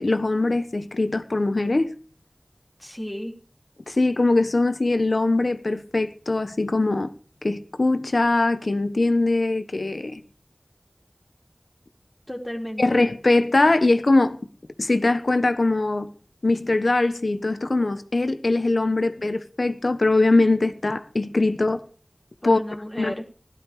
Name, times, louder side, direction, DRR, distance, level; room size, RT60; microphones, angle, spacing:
voice 1, 0.0-1.9 3.9-7.1 7.4-10.2 12.8-14.4 14.8-16.1 16.4-21.8 22.4-22.6 23.0-23.1, left 2 dB, 85° left, 1.3 m, -21 dB
voice 2, 2.8-3.4 12.3-13.0 22.4-23.2, equal, 20° left, 3.2 m, -33 dB
16.0 x 12.0 x 5.0 m
wide cardioid pair, 40°, 0 cm